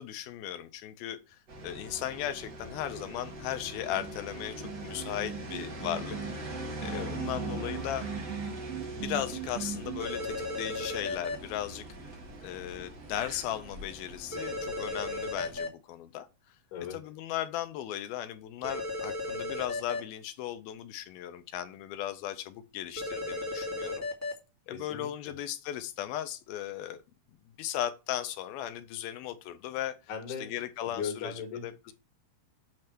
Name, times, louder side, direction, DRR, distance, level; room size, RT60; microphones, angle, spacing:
voice 1, 0.0-8.1 8.9-11.9 12.4-16.3 16.9-24.0 24.7-27.0 27.6-29.9 30.4-31.3 31.6-31.9, left 12 dB, 85° left, 2.5 m, -37 dB
sound 1, 1.5-15.6, right 2 dB, 45° right, 1.3 m, -42 dB
sound 2, 3.7-10.0, right 8 dB, 75° right, 2.6 m, -39 dB
sound 3, 10.0-11.3 14.3-15.7 18.6-20.0 23.0-24.3, left 2 dB, 15° left, 0.6 m, -35 dB
voice 2, 24.7-25.3 30.1-30.5 30.8-31.9, left 6 dB, 60° left, 3.5 m, -38 dB
9.0 x 3.3 x 5.9 m
omnidirectional pair, 4.3 m